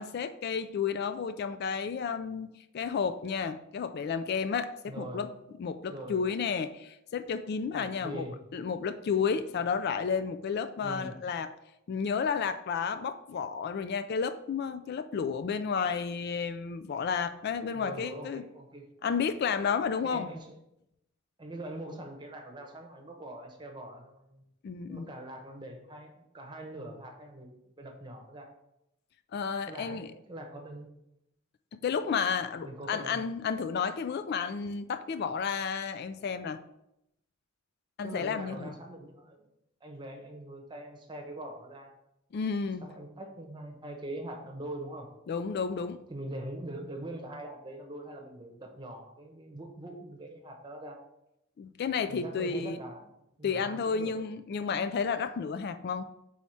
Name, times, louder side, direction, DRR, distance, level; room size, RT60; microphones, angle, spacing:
voice 1, 0.0-5.3 5.6-8.3 8.5-11.5 11.9-18.4 19.0-20.3 24.6-25.1 29.3-30.1 31.7-36.6 38.0-38.7 42.3-42.8 45.3-46.0 51.6-52.8 53.4-56.0, left 6 dB, 50° left, 10 dB, 0.3 m, -32 dB
voice 2, 4.9-5.3 5.9-6.2 7.7-8.4 10.8-11.1 17.7-18.8 20.0-20.6 21.4-24.4 24.9-28.5 29.7-30.0 30.3-30.9 32.6-33.2 38.0-39.5 39.8-41.9 42.8-45.1 46.1-51.0 52.1-53.1 53.4-54.1, right 1 dB, 20° right, 1 dB, 1.0 m, -43 dB
4.7 x 4.2 x 5.6 m, 0.84 s
head